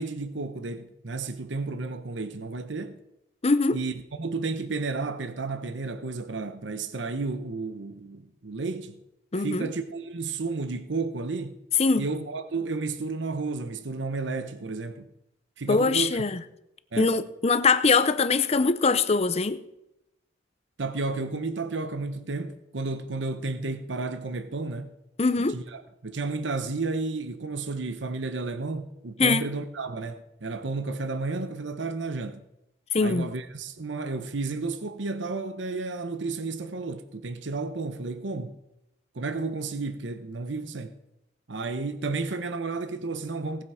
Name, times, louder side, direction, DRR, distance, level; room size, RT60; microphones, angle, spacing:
voice 1, 0.0-3.0 3.7-9.0 9.4-11.6 12.0-15.1 15.6-16.2 16.9-17.2 20.8-24.9 25.5-32.4 33.0-38.6 39.1-40.9 41.5-43.6, right 3 dB, 70° right, 0.9 m, -32 dB
voice 2, 3.4-3.8 9.3-9.7 11.8-12.1 15.7-16.4 17.0-19.6 25.2-25.6 29.2-29.5 32.9-33.3, left 4 dB, 35° left, 0.7 m, -22 dB
18.0 x 7.9 x 4.9 m
head